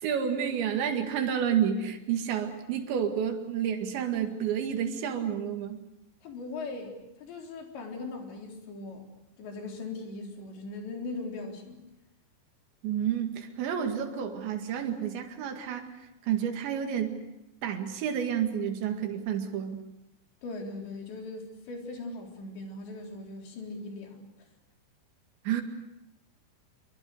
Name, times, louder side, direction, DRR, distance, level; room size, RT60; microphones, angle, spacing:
voice 1, 0.0-5.8 12.8-15.9 16.3-17.2 17.6-19.8 25.4-25.6, right 8 dB, 90° right, 4 dB, 4.4 m, -30 dB
voice 2, 6.2-9.1 9.4-11.9 20.4-24.3, left 3 dB, 80° left, 1 dB, 6.1 m, -39 dB
27.0 x 23.5 x 6.7 m, 0.92 s
omnidirectional pair, 5.0 m